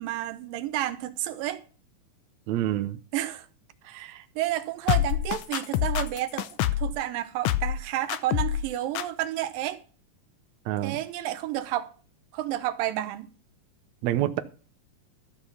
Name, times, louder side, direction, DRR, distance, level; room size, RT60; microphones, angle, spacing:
voice 1, 0.0-1.6 3.1-3.5 3.8-9.8 10.8-11.9 12.3-13.3, right 13 dB, 85° right, 2.6 m, -31 dB
voice 2, 2.5-3.0 10.7-11.0 14.0-14.4, right 13 dB, 70° right, 1.8 m, -26 dB
sound 1, 4.9-7.0 7.4-7.8 8.1-8.7 8.9-9.0, left 12 dB, 75° left, 1.8 m, -26 dB
13.5 x 5.9 x 7.1 m
omnidirectional pair, 3.9 m